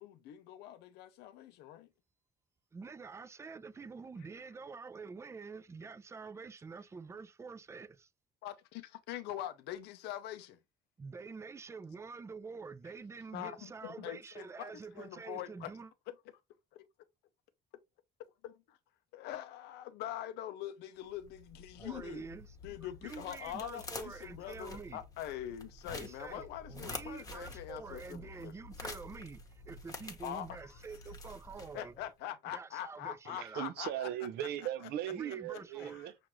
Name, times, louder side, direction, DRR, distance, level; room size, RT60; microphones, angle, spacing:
voice 1, 0.0-1.9 8.4-10.6 13.3-15.7 16.7-16.9 18.4-18.8 19.1-22.2 22.6-28.5 30.2-30.8 31.7-33.9 35.8-36.0, left 12 dB, 80° left, 0.5 m, -43 dB
voice 2, 2.7-8.1 11.0-15.9 21.8-22.6 22.8-25.0 25.9-31.9 32.5-33.7 35.1-36.0, right 4 dB, 15° right, 0.4 m, -47 dB
sound 1, 21.1-32.1, left 3 dB, 20° left, 1.0 m, -49 dB
voice 3, 33.2-36.2, right 11 dB, 75° right, 0.6 m, -38 dB
6.0 x 2.5 x 3.0 m
cardioid pair, 110°, 17 cm